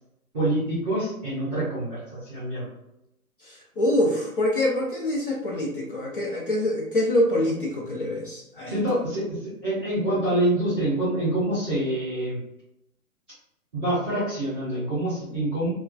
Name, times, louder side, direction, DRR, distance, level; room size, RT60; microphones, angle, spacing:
voice 1, 0.3-2.7 8.7-12.4 13.7-15.7, right 1 dB, 10° right, -16 dB, 0.5 m, -26 dB
voice 2, 3.4-8.7, left 1 dB, 40° left, -4 dB, 0.5 m, -25 dB
2.3 x 2.2 x 2.4 m, 0.82 s
hypercardioid pair, 145°, 45 cm